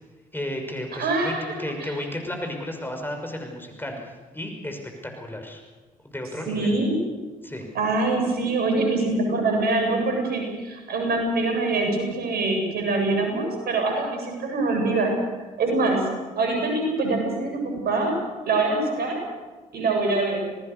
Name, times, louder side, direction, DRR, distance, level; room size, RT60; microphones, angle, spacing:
voice 1, 0.3-1.3 1.6-3.9 4.3-5.6 6.0-6.8 7.4-7.7, left 1 dB, 10° left, 3 dB, 5.8 m, -33 dB
voice 2, 0.9-1.9 6.5-7.0 7.7-15.1 15.6-16.0 16.4-18.1 18.5-19.2 19.7-20.5, right 3 dB, 60° right, 2 dB, 7.7 m, -24 dB
26.5 x 19.0 x 6.7 m, 1.3 s
hypercardioid pair, 45°, 18 cm